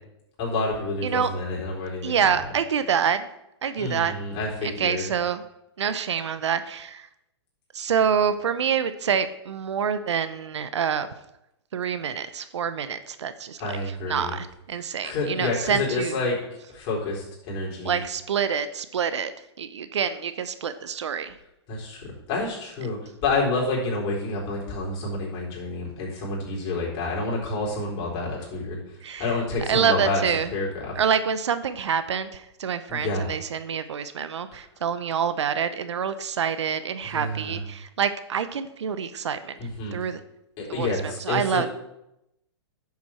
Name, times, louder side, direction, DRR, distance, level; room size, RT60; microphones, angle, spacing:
voice 1, 0.4-2.1 3.8-5.0 13.6-14.4 15.0-16.4 16.7-18.0 21.7-28.8 29.2-30.2 30.5-30.9 32.9-33.2 37.1-37.6 39.6-39.9 40.6-41.7, left 3 dB, 35° left, -4 dB, 4.3 m, -28 dB
voice 2, 1.0-1.3 2.0-3.3 3.6-4.1 4.6-5.4 5.8-7.1 7.7-11.1 11.7-16.2 17.8-19.3 19.6-21.4 29.0-29.4 29.7-30.5 30.9-39.6 39.9-40.2 40.7-41.7, right 7 dB, 80° right, 12 dB, 0.8 m, -27 dB
10.5 x 7.3 x 4.5 m, 0.85 s
hypercardioid pair, 130°, 15 cm